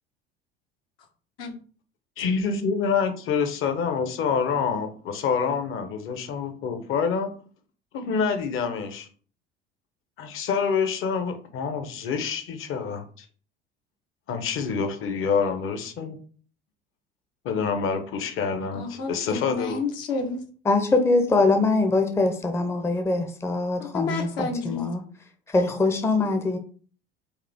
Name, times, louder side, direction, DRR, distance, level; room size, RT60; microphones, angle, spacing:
voice 1, 2.2-7.3 7.9-9.1 10.2-13.3 14.3-16.2 17.4-19.8, left 6 dB, 45° left, 0.9 m, -27 dB
voice 2, 18.7-20.4 23.8-24.9, left 4 dB, 65° left, 1.1 m, -30 dB
voice 3, 20.7-25.0 25.5-26.6, left 3 dB, 10° left, 0.6 m, -23 dB
4.8 x 2.5 x 3.4 m
figure-of-eight pair, 65°, 30 cm